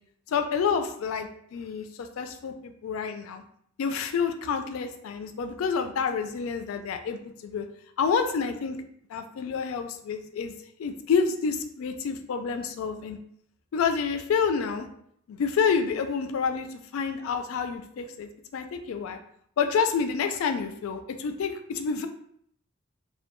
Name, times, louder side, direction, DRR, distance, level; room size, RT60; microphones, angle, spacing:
voice 1, 0.3-3.4 3.8-7.7 8.0-8.8 9.1-10.5 10.8-13.2 13.7-14.9 15.3-19.2 19.6-22.1, left 6 dB, 70° left, 7 dB, 0.3 m, -28 dB
2.2 x 2.1 x 2.9 m, 0.67 s
head